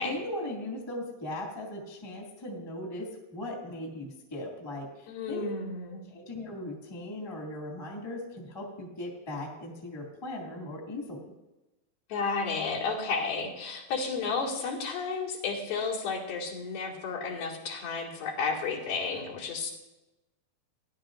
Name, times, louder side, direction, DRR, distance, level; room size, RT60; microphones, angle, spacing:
voice 1, 0.0-5.5 6.1-11.2, left 1 dB, 10° left, -1 dB, 1.1 m, -38 dB
voice 2, 5.1-6.1 12.1-19.7, left 4 dB, 85° left, -4 dB, 3.8 m, -32 dB
17.5 x 11.0 x 2.6 m, 1.0 s
omnidirectional pair, 4.1 m